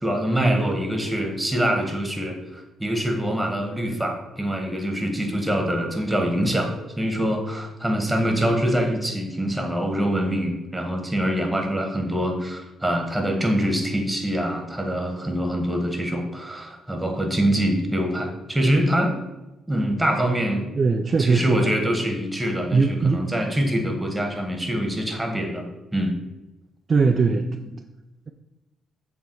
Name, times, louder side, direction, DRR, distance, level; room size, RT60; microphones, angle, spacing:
voice 1, 0.0-6.7 7.0-19.1 19.7-20.7 21.2-25.7 25.9-26.1 27.2-27.7, equal, 5° right, 3 dB, 1.4 m, -24 dB
voice 2, 20.8-21.7 22.7-23.3 26.9-27.4, right 4 dB, 40° right, 5 dB, 0.4 m, -20 dB
7.6 x 3.4 x 4.5 m, 1.0 s
cardioid pair, 90°, 0 cm